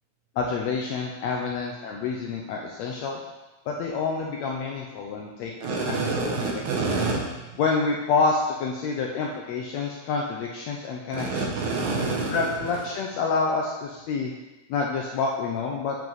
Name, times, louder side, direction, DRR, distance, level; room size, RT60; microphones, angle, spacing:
voice 1, 0.4-3.2 3.7-5.5 5.8-5.9 6.2-7.0 7.6-11.4 12.3-14.3 14.7-16.0, left 4 dB, 75° left, -1 dB, 1.6 m, -28 dB
voice 2, 5.6-7.5 11.1-12.7, right 3 dB, 70° right, -2 dB, 2.4 m, -27 dB
9.3 x 4.8 x 4.0 m, 1.1 s
omnidirectional pair, 3.7 m